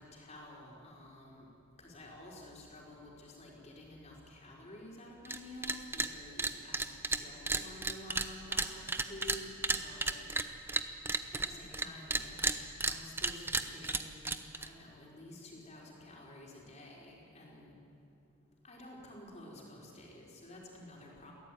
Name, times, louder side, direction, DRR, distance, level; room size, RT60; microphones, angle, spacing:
voice 1, 0.0-1.5 1.8-6.9 7.2-10.2 11.3-12.4 12.8-17.7 18.6-21.3, left 1 dB, 30° left, -2 dB, 4.7 m, -51 dB
sound 1, 5.2-5.4 5.6-6.1 6.4-11.9 12.1-14.7, right 3 dB, 10° right, 0.7 m, -33 dB
22.5 x 16.5 x 9.4 m, 2.7 s
head